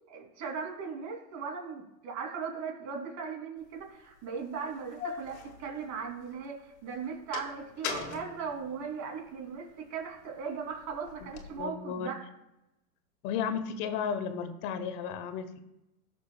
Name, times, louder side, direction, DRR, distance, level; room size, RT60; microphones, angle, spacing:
voice 1, 0.1-12.2, right 6 dB, 40° right, 1 dB, 2.9 m, -38 dB
sound 1, 3.8-3.9 4.6-6.4 6.8-9.4 9.9-11.6, left 6 dB, 75° left, 1.9 m, -41 dB
voice 2, 11.6-12.1 13.2-15.6, left 7 dB, 45° left, 10 dB, 1.1 m, -34 dB
18.0 x 6.5 x 2.3 m, 0.89 s
hypercardioid pair, 120°, 44 cm